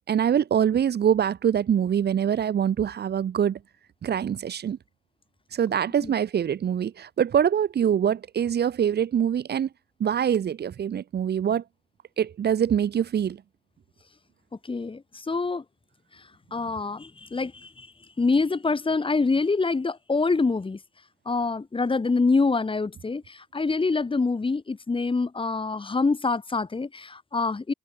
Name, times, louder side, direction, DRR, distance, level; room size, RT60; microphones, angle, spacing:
voice 1, 0.1-3.6 4.0-4.8 5.5-9.7 10.0-11.6 12.2-13.4, right 9 dB, 55° right, 2.0 m, -24 dB
voice 2, 14.7-15.6 16.5-17.9 18.2-20.8 21.3-27.7, left 3 dB, 25° left, 6.5 m, -25 dB
cardioid pair, 90°, 20 cm